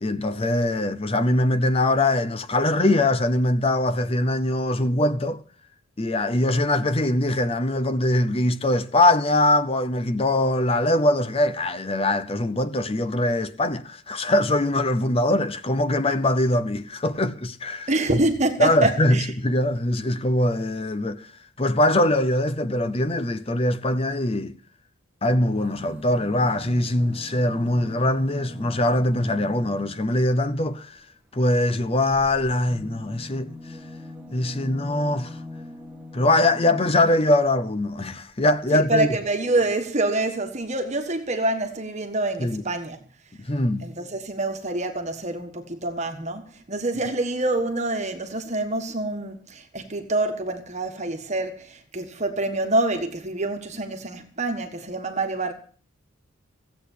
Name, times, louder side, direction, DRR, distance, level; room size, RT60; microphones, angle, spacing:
voice 1, 0.0-5.4 6.0-18.2 18.6-21.3 21.6-24.5 25.2-31.0 31.3-33.8 34.3-35.4 36.1-39.1 42.4-42.6 43.4-43.9, left 1 dB, 25° left, 0.7 m, -22 dB
voice 2, 17.9-19.3 38.7-43.0 43.8-55.5, right 2 dB, 30° right, 1.5 m, -26 dB
sound 1, 25.5-30.3 32.0-37.5 38.4-38.5 38.7-38.8, left 1 dB, 5° right, 1.6 m, -41 dB
16.0 x 8.4 x 8.3 m
head